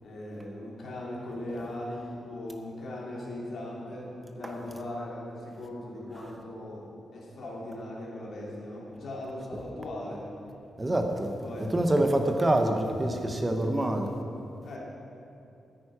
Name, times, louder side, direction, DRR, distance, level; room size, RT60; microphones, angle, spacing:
voice 1, 0.0-10.3 11.4-11.7 14.6-14.8, left 1 dB, 55° left, -4 dB, 2.8 m, -39 dB
voice 2, 10.8-11.3 11.6-14.1, right 1 dB, 15° right, 4 dB, 1.0 m, -26 dB
13.5 x 9.4 x 4.9 m, 2.7 s
wide cardioid pair, 160°, 0 cm